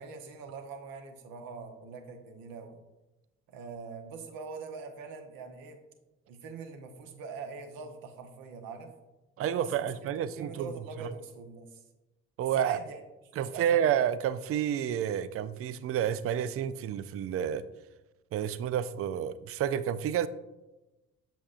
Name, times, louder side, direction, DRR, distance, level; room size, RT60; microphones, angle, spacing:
voice 1, 0.0-2.8 3.5-5.8 6.3-8.9 9.4-11.8 12.4-13.0 13.3-13.9, right 5 dB, 60° right, 5 dB, 1.1 m, -43 dB
voice 2, 9.4-10.7 11.0-11.1 12.4-12.8 13.4-17.6 18.3-20.3, right 9 dB, 35° right, 15 dB, 0.4 m, -30 dB
7.5 x 7.2 x 2.5 m, 1.0 s
figure-of-eight pair, 50°, 39 cm